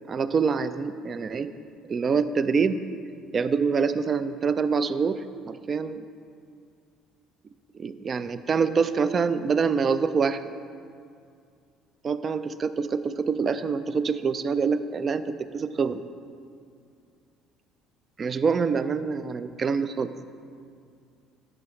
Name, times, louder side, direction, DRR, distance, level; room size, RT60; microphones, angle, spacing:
voice 1, 0.1-1.5 1.8-2.8 3.3-6.1 7.7-10.4 12.0-16.0 18.2-20.1, right 5 dB, 40° right, 13 dB, 0.3 m, -25 dB
10.5 x 6.1 x 3.2 m, 2.3 s
hypercardioid pair, 55°, 0 cm